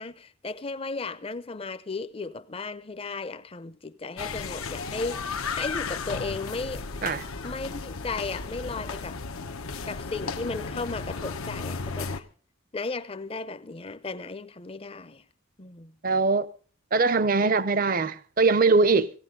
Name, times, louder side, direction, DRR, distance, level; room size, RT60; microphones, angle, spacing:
voice 1, 0.0-6.9 7.4-9.2 9.8-12.3 12.7-15.2 15.6-15.9 17.4-17.6, left 3 dB, 25° left, 0.6 m, -35 dB
sound 1, 4.2-12.2, left 4 dB, 85° left, 1.0 m, -34 dB
voice 2, 16.0-16.5 16.9-19.1, right 4 dB, 40° right, 0.6 m, -22 dB
17.5 x 17.5 x 3.8 m
head